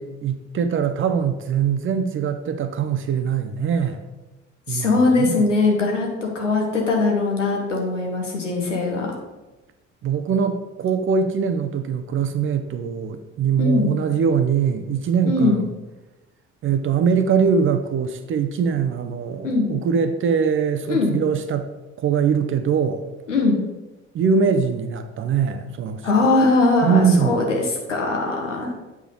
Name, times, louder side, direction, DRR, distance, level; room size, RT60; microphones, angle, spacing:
voice 1, 0.0-4.0 4.7-5.4 10.0-15.7 16.6-21.7 22.0-23.1 24.1-26.3 26.8-27.5, right 6 dB, 35° right, 9 dB, 0.7 m, -22 dB
voice 2, 4.7-9.1 13.6-13.9 15.3-15.6 19.4-19.7 20.9-21.1 23.3-23.6 26.0-28.7, left 3 dB, 85° left, 1 dB, 1.2 m, -20 dB
7.8 x 4.9 x 3.8 m, 1.1 s
figure-of-eight pair, 55°, 36 cm